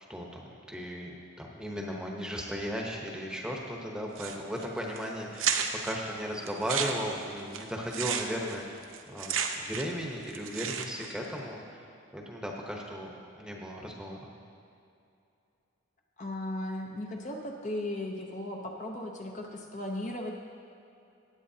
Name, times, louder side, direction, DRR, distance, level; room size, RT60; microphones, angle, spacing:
voice 1, 0.1-5.6 5.8-11.8 12.1-14.3, equal, 5° right, -1 dB, 0.9 m, -36 dB
sound 1, 4.2-4.6 5.0-5.1 5.4-5.9 6.5-10.0 10.3-11.1, right 7 dB, 80° right, 0.7 m, -32 dB
voice 2, 16.2-20.3, left 1 dB, 35° left, 1 dB, 0.7 m, -36 dB
16.5 x 9.3 x 2.8 m, 2.6 s
head